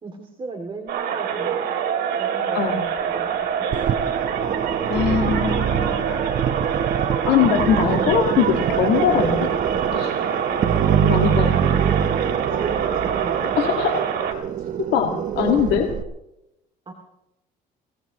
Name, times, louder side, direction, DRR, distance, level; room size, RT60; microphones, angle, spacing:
voice 1, 0.0-1.6 2.2-2.6 3.1-3.7 11.2-13.4 16.9-17.0, right 3 dB, 30° right, 2 dB, 2.5 m, -36 dB
sound 1, 0.9-14.3, right 8 dB, 65° right, 3.0 m, -25 dB
sound 2, 3.7-16.0, right 8 dB, 50° right, 0.9 m, -24 dB
voice 2, 4.9-6.3 7.3-9.5 9.9-10.2 11.0-11.5 13.4-14.0 14.8-15.9, left 8 dB, 80° left, 2 dB, 1.9 m, -22 dB
25.5 x 17.5 x 3.1 m, 0.88 s
cardioid pair, 110°, 17 cm